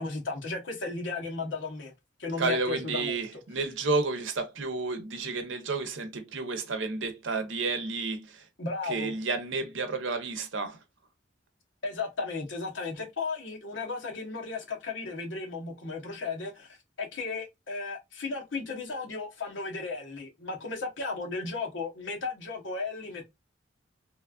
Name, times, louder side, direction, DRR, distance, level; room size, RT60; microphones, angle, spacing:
voice 1, 0.0-1.9 2.2-3.2 8.6-9.1 11.8-23.2, left 3 dB, 75° left, 1.0 m, -35 dB
voice 2, 2.4-8.5 8.8-10.8, right 3 dB, 85° right, 0.7 m, -31 dB
3.0 x 2.3 x 2.2 m
head